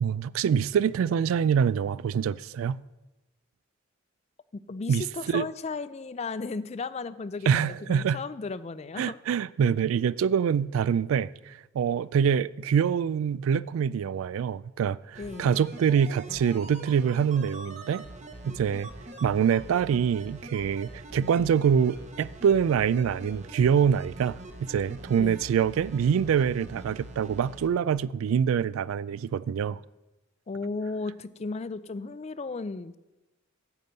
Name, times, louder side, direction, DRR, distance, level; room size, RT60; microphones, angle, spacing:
voice 1, 0.0-2.8 4.9-5.5 7.5-8.2 9.0-18.0 18.4-18.9 19.2-29.8, right 7 dB, 90° right, 0.3 m, -25 dB
voice 2, 4.7-9.2 15.2-15.6 25.2-25.4 30.5-33.0, left 4 dB, 30° left, 0.4 m, -35 dB
sound 1, 15.1-27.7 28.0-28.1, right 2 dB, 35° right, 1.0 m, -44 dB
9.4 x 5.3 x 7.9 m
head